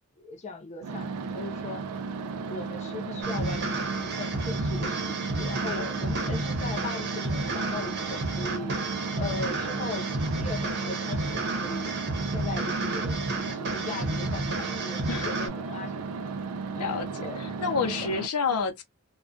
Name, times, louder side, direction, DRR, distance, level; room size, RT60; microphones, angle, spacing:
voice 1, 0.2-1.9 2.4-8.8 9.1-11.9 12.3-13.2 13.5-16.3 16.7-17.5 17.8-18.1 18.5-18.6, left 3 dB, 30° left, 0.6 m, -39 dB
sound 1, 0.8-18.3, right 4 dB, 90° right, 0.4 m, -35 dB
sound 2, 3.2-15.5, right 2 dB, 50° right, 0.8 m, -31 dB
voice 2, 16.8-18.8, left 5 dB, 85° left, 0.6 m, -29 dB
2.3 x 2.2 x 2.4 m
head